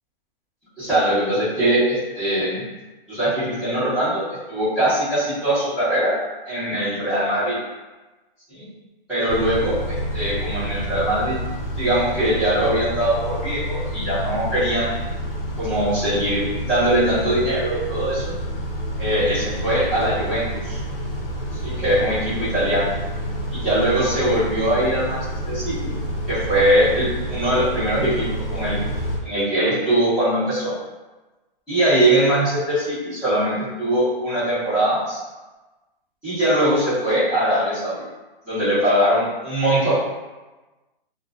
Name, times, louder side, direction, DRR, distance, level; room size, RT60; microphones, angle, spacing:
voice 1, 0.8-2.6 3.1-4.2 4.5-6.1 6.5-7.6 8.5-8.7 9.1-11.4 11.8-15.0 15.6-18.3 19.0-20.8 21.6-22.9 23.5-25.2 25.5-25.9 26.3-28.8 29.2-30.7 31.7-35.2 36.2-38.0 38.4-39.9, right 1 dB, 5° right, -18 dB, 0.7 m, -21 dB
Car / Idling / Accelerating revving vroom, 9.3-29.2, right 1 dB, 70° left, 0.6 m, -29 dB
2.3 x 2.3 x 2.3 m, 1.1 s
hypercardioid pair, 175°, 29 cm